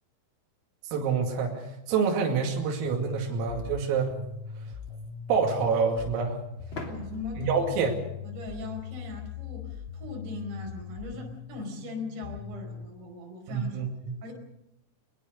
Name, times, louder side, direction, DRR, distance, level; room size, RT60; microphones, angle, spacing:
voice 1, 0.9-4.2 5.3-6.4 7.4-7.9 13.5-14.2, right 5 dB, 80° right, 0 dB, 5.1 m, -27 dB
sound 1, 2.9-12.9, left 6 dB, 85° left, 4.0 m, -41 dB
sound 2, 6.7-9.3, left 2 dB, 30° left, 2.9 m, -45 dB
voice 2, 6.8-7.9 8.2-13.8 14.2-14.3, left 2 dB, 60° right, 1 dB, 6.9 m, -39 dB
23.0 x 21.5 x 6.5 m, 0.83 s
omnidirectional pair, 6.0 m